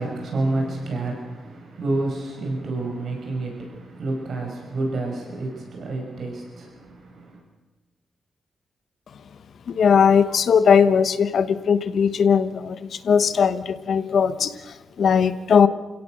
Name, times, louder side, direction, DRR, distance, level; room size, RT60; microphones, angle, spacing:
voice 1, 0.0-7.4, right 2 dB, 65° right, 1 dB, 6.5 m, -29 dB
voice 2, 9.7-15.7, left 6 dB, 65° left, 12 dB, 1.2 m, -19 dB
29.0 x 17.0 x 6.7 m, 1.2 s
cardioid pair, 115°, 0 cm